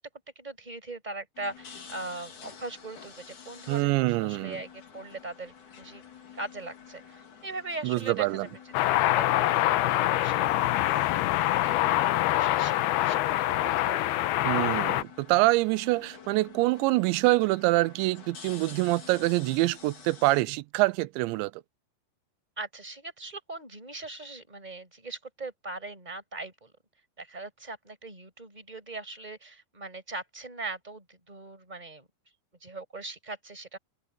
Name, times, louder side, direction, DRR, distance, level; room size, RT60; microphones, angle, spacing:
voice 1, 0.3-6.0 6.3-9.9 10.2-11.2 11.6-12.1 12.3-14.2 22.6-26.7 27.2-32.1 32.6-33.8, right 2 dB, 10° right, 6.0 m, -40 dB
sound 1, 1.4-20.4, left 7 dB, 45° left, 4.3 m, -49 dB
voice 2, 3.7-4.6 7.8-8.5 14.4-21.5, right 20 dB, 85° right, 2.7 m, -25 dB
sound 2, 8.7-15.0, left 15 dB, 80° left, 2.4 m, -25 dB
open air
omnidirectional pair, 5.4 m